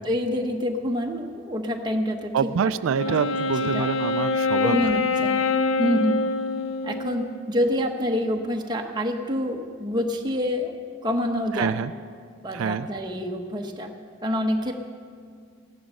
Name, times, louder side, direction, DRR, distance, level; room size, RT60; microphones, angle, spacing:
voice 1, 0.0-2.7 3.0-3.2 3.6-3.9 4.6-5.4 5.8-6.2 6.8-10.7 11.0-11.9 12.4-13.9 14.2-14.7, equal, 20° right, 2 dB, 1.1 m, -27 dB
voice 2, 2.3-4.8 11.5-11.9 12.5-12.9, right 7 dB, 85° right, 14 dB, 0.3 m, -26 dB
Wind instrument woodwind instrument, 2.9-7.5, left 4 dB, 85° left, 0.7 m, -25 dB
15.5 x 11.0 x 6.4 m, 2.2 s
head